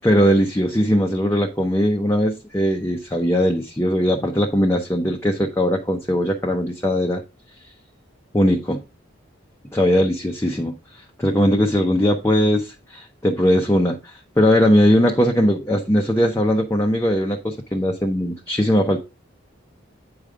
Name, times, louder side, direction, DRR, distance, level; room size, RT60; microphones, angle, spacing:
voice 1, 0.0-7.2 8.3-8.8 9.7-10.7 11.2-19.0, equal, 15° left, 0.6 m, -19 dB
8.7 x 5.1 x 3.6 m
head